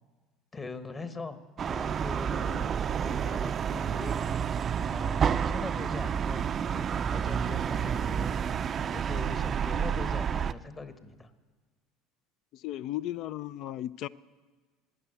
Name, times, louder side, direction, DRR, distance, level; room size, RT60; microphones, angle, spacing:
voice 1, 0.5-1.4 1.7-4.2 4.9-8.4 8.9-11.3, left 3 dB, 25° left, 10 dB, 1.3 m, -42 dB
sound 1, 1.6-10.5, right 7 dB, 40° right, 0.4 m, -29 dB
voice 2, 12.5-14.1, left 13 dB, 60° left, 18 dB, 0.4 m, -35 dB
13.0 x 10.0 x 9.0 m, 1.4 s
hypercardioid pair, 75°, 0 cm